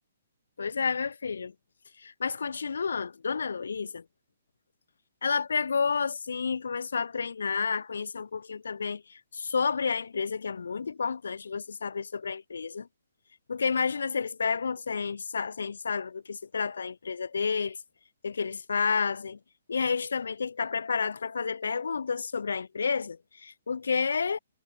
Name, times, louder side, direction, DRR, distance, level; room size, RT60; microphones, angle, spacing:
voice 1, 0.6-1.5 2.0-4.0 5.2-12.9 13.5-17.8 18.2-19.4 19.7-24.4, left 5 dB, 85° left, 4.6 m, -30 dB
hypercardioid pair, 160°, 0 cm